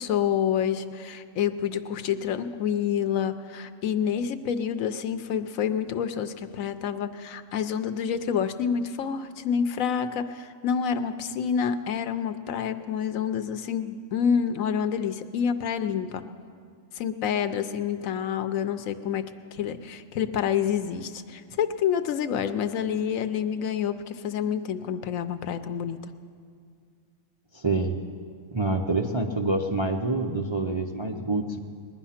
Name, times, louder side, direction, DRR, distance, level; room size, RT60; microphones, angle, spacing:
voice 1, 0.0-16.2 17.0-19.2 19.5-26.0, left 8 dB, 80° left, 10 dB, 1.1 m, -28 dB
voice 2, 27.5-28.0 28.5-31.6, right 2 dB, 30° right, 2 dB, 0.5 m, -27 dB
20.5 x 10.5 x 5.7 m, 2.2 s
omnidirectional pair, 1.4 m